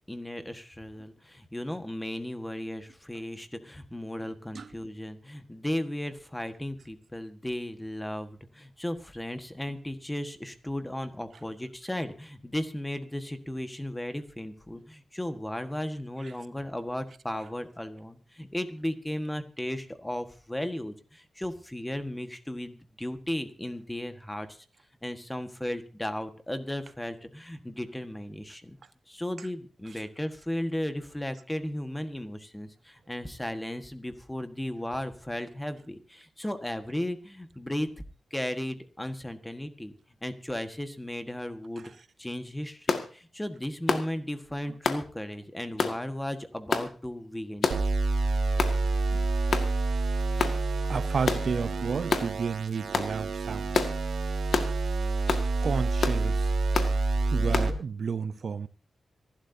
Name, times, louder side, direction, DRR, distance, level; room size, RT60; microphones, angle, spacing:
voice 1, 0.1-24.6 25.0-28.8 29.1-37.9 38.3-39.9 40.2-41.9 42.2-47.7, left 1 dB, 10° left, 1.5 m, -35 dB
sound 1, 42.9-43.1 43.9-44.1 44.8-45.0 45.8-46.0 46.7-46.9 47.6-47.9 48.6-48.8 49.5-49.7 50.4-50.6 51.3-51.5 52.1-52.3 52.9-53.1 53.7-53.9 54.5-54.7 55.3-55.5 56.0-56.2 56.7-56.9 57.5-57.7, left 5 dB, 60° left, 1.9 m, -27 dB
sound 2, 47.7-57.7, right 3 dB, 70° right, 2.6 m, -28 dB
voice 2, 50.9-53.7 55.6-56.5 57.3-58.7, right 5 dB, 55° right, 0.6 m, -32 dB
27.0 x 12.0 x 2.8 m
wide cardioid pair, 145°, 0 cm